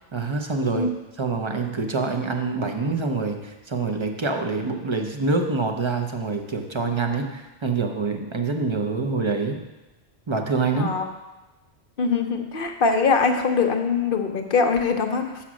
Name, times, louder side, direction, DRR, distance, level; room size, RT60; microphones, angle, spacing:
voice 1, 0.1-9.6 10.3-11.0, right 4 dB, 30° right, 4 dB, 0.6 m, -26 dB
voice 2, 10.7-11.1 12.0-15.4, left 5 dB, 55° left, 6 dB, 0.8 m, -22 dB
7.1 x 5.9 x 6.2 m, 1.1 s
omnidirectional pair, 1.2 m